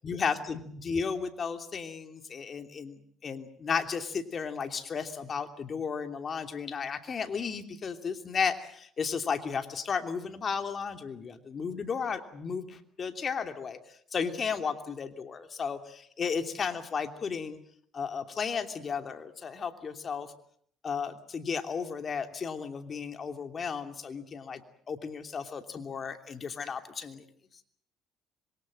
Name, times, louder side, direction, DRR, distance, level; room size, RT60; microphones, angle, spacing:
voice 1, 0.0-17.6 17.9-20.3 20.8-24.6 24.9-27.2, left 6 dB, 40° left, 7 dB, 3.0 m, -34 dB
26.0 x 23.5 x 7.7 m, 0.65 s
cardioid pair, 90°, 0 cm